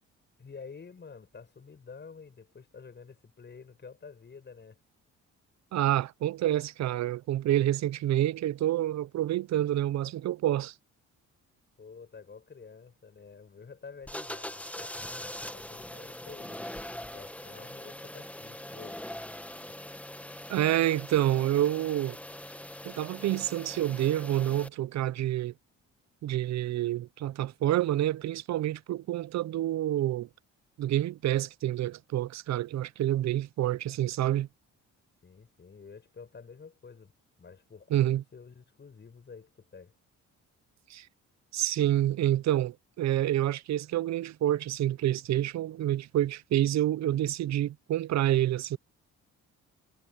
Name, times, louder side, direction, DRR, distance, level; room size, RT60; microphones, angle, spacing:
voice 1, 0.4-4.8 11.8-16.6 17.1-19.0 19.7-19.8 35.2-37.1 37.4-39.9, left 5 dB, 35° left, 6.9 m, -49 dB
voice 2, 5.7-10.7 20.5-22.2 22.8-25.5 26.2-30.3 30.8-34.5 37.9-38.2 40.9-41.1 41.5-48.8, right 13 dB, 65° right, 0.6 m, -28 dB
sound 1, 14.0-24.7, left 1 dB, 5° left, 1.1 m, -42 dB
cardioid pair, 90°, 30 cm